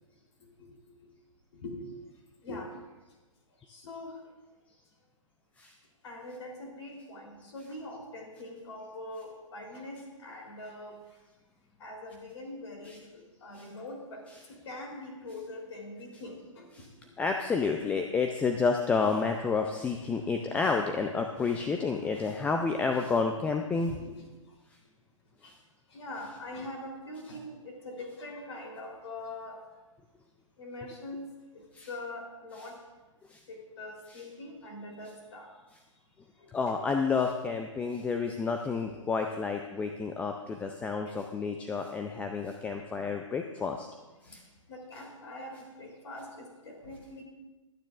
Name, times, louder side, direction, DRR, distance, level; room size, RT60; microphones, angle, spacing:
voice 1, 0.4-1.0 1.5-1.8 2.4-2.7 3.6-4.2 6.0-11.0 11.8-17.1 23.6-24.3 25.4-25.5 25.9-29.6 30.6-31.3 31.5-32.8 33.5-35.5 36.4-36.7 41.1-41.2 43.6-43.7 44.2-44.4 44.7-47.2, left 1 dB, 55° left, 1 dB, 3.5 m, -43 dB
voice 2, 17.2-24.0 25.4-25.5 31.7-31.9 32.6-32.7 33.3-33.4 34.1-34.2 36.5-43.9 44.2-44.4, left 4 dB, 10° left, 4 dB, 0.4 m, -30 dB
24.5 x 9.2 x 2.5 m, 1.2 s
figure-of-eight pair, 130°, 17 cm